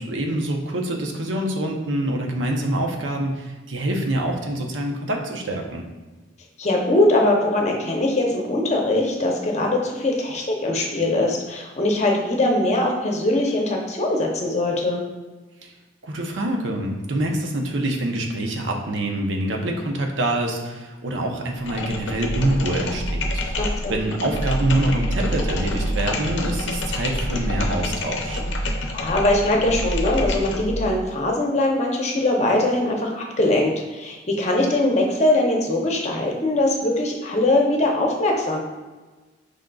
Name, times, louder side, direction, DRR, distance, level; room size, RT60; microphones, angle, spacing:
voice 1, 0.0-5.8 15.6-15.7 16.0-28.4, right 1 dB, 90° right, 2 dB, 0.7 m, -25 dB
voice 2, 6.6-15.0 23.6-24.0 28.9-38.6, left 1 dB, 35° left, 0 dB, 0.7 m, -21 dB
sound 1, 21.6-30.9, equal, 90° left, 0.6 m, -27 dB
5.0 x 3.7 x 2.3 m, 1.2 s
head